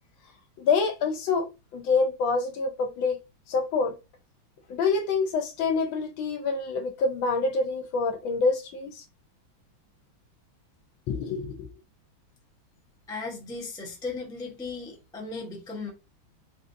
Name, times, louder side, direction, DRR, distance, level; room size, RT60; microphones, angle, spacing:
voice 1, 0.6-1.5 1.7-3.2 3.5-4.0 4.7-9.0 11.1-11.7, left 4 dB, 75° left, 1.4 m, -26 dB
voice 2, 13.1-15.9, left 4 dB, 5° left, 0.4 m, -36 dB
3.9 x 2.6 x 2.6 m
omnidirectional pair, 2.2 m